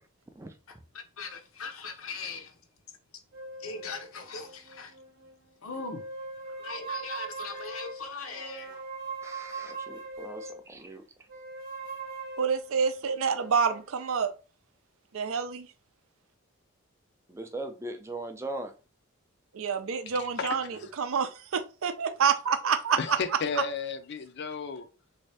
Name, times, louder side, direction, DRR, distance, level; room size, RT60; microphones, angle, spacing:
voice 1, 0.7-2.6 3.6-4.9 5.6-6.0 6.6-8.7, left 4 dB, 80° left, 0.8 m, -40 dB
sound 1, 3.3-5.4 5.7-10.6 11.3-13.9, right 3 dB, 45° right, 0.8 m, -41 dB
voice 2, 9.2-11.0 17.3-18.7, right 2 dB, 15° right, 0.4 m, -39 dB
voice 3, 12.4-14.3 15.1-15.7 19.5-23.0 23.6-23.7, right 6 dB, 75° right, 0.5 m, -28 dB
voice 4, 20.1-20.9 23.0-24.9, left 5 dB, 50° left, 0.5 m, -34 dB
3.5 x 2.7 x 3.2 m
head